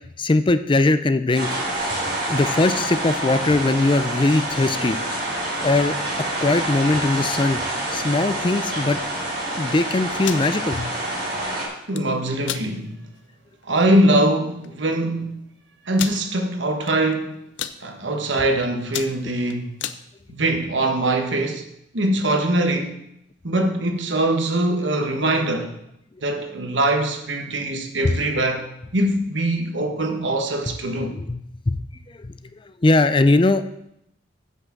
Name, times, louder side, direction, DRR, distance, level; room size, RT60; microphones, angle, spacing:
voice 1, 0.2-1.5 2.3-5.0 5.6-5.9 6.4-7.6 7.9-9.0 9.6-10.9 31.1-31.4 31.7-31.8 32.2-32.3 32.8-33.7, left 2 dB, 25° left, 0.5 m, -20 dB
sound 1, 1.3-11.7, right 1 dB, 55° right, 3.7 m, -27 dB
sound 2, 10.1-10.5 11.7-12.0 12.4-12.7 13.2-13.3 13.6-13.9 14.6-14.7 14.9-15.0 16.0-16.2 16.8-17.1 17.4-17.8 18.3-18.5 18.8-20.0, left 10 dB, 80° left, 0.6 m, -31 dB
voice 2, 11.9-13.0 13.6-15.5 15.8-17.4 17.8-19.7 20.3-21.6 21.9-23.0 23.4-25.8 26.2-28.7 28.9-31.2, right 1 dB, 85° right, 1.4 m, -22 dB
8.2 x 6.0 x 7.5 m
head